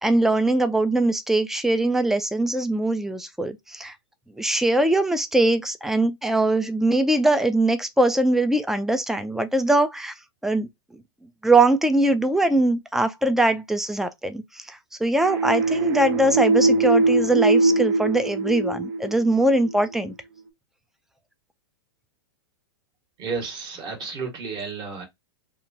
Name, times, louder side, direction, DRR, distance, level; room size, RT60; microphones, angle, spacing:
voice 1, 0.0-3.9 4.4-10.1 10.4-10.7 11.4-20.1, right 2 dB, 5° right, 0.3 m, -22 dB
sound 1, 15.2-19.7, right 3 dB, 60° right, 0.7 m, -22 dB
voice 2, 23.2-25.0, right 4 dB, 35° right, 1.4 m, -32 dB
2.8 x 2.4 x 2.6 m
hypercardioid pair, 115°, 13 cm